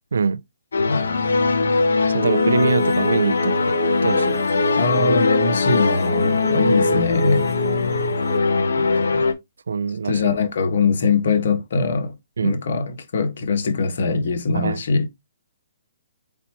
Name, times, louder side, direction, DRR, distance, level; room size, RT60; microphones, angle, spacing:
voice 1, 0.1-0.4 2.1-4.4 6.4-6.8 9.7-10.3 12.4-12.6 14.5-14.8, right 5 dB, 80° right, 0.4 m, -24 dB
sound 1, 0.7-9.3, left 4 dB, 80° left, 1.0 m, -20 dB
voice 2, 0.7-1.3 4.7-7.4 8.8-9.2 10.0-12.1 12.4-15.1, left 4 dB, 60° left, 1.4 m, -22 dB
sound 2, 2.2-8.4, right 1 dB, 15° left, 0.7 m, -29 dB
4.1 x 4.1 x 2.9 m
hypercardioid pair, 155°, 0 cm